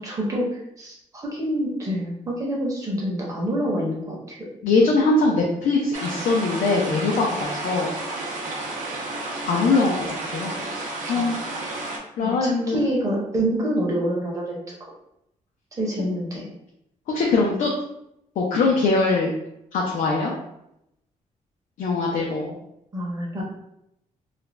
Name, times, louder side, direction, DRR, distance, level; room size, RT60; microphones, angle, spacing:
voice 1, 0.0-4.4 11.0-11.3 12.2-14.8 15.8-16.5 22.9-23.4, equal, 25° right, -3 dB, 0.7 m, -27 dB
voice 2, 4.6-7.9 9.5-11.5 12.2-12.8 17.1-17.7 18.4-19.3 19.7-20.3 21.8-22.6, left 3 dB, 75° left, -2 dB, 0.5 m, -22 dB
sound 1, 5.9-12.0, right 2 dB, 80° right, 0.6 m, -31 dB
2.4 x 2.1 x 3.1 m, 0.81 s
wide cardioid pair, 165°, 13 cm